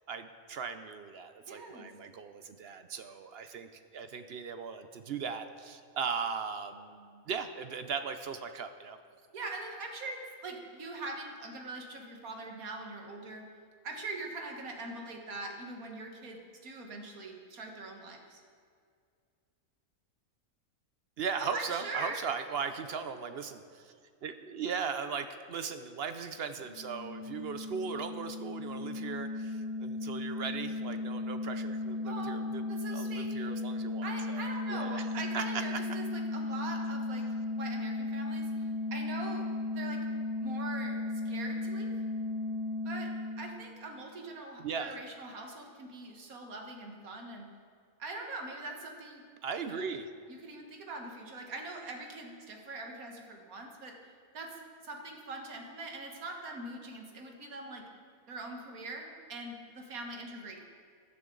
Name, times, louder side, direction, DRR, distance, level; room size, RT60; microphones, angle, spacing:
voice 1, 0.1-9.0 21.2-23.9 24.2-35.1 35.3-35.4 44.6-45.0 49.4-50.1, right 6 dB, 60° right, 9 dB, 0.7 m, -38 dB
voice 2, 1.5-1.9 9.3-13.5 13.8-18.4 21.4-22.2 32.0-32.4 32.7-33.5 34.0-37.3 37.5-39.5 39.7-40.0 40.3-41.0 41.3-41.9 42.9-43.1 43.4-47.5 48.0-49.2 49.7-49.8 50.3-53.9 54.3-54.6 54.8-57.8 58.3-60.6, right 2 dB, 75° right, 2 dB, 1.9 m, -42 dB
sound 1, 26.6-44.1, left 2 dB, 65° left, 2.4 m, -36 dB
14.5 x 12.0 x 3.9 m, 2.2 s
omnidirectional pair, 1.5 m